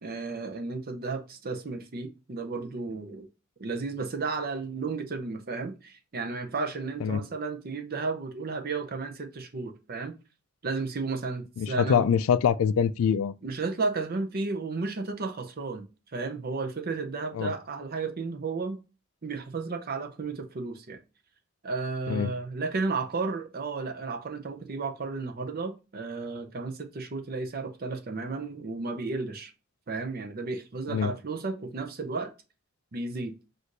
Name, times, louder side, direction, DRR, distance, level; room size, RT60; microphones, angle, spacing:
voice 1, 0.0-3.3 3.6-10.2 10.6-12.0 13.4-18.8 19.2-21.0 21.6-29.5 29.9-32.3 32.9-33.4, right 3 dB, 45° right, 0.6 m, -33 dB
voice 2, 11.6-13.3 17.3-17.5 22.1-22.3 30.9-31.1, left 7 dB, 75° left, 0.3 m, -24 dB
6.1 x 2.5 x 2.6 m
head